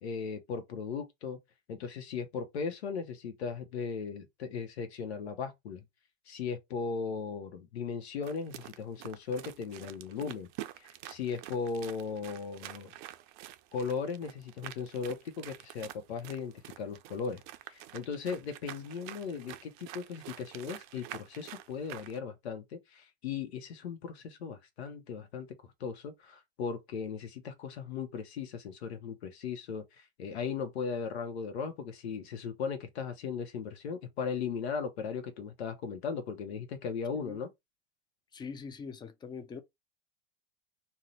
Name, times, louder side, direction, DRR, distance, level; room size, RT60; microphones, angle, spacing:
voice 1, 0.0-1.4 1.7-5.8 6.3-10.5 10.8-12.9 13.7-17.4 17.7-25.5 25.8-37.5, left 6 dB, 75° left, 0.8 m, -37 dB
sound 1, 8.2-22.2, right 14 dB, 50° right, 0.5 m, -47 dB
voice 2, 38.3-39.6, left 5 dB, 15° left, 0.4 m, -43 dB
2.7 x 2.1 x 3.9 m
hypercardioid pair, 100°, 32 cm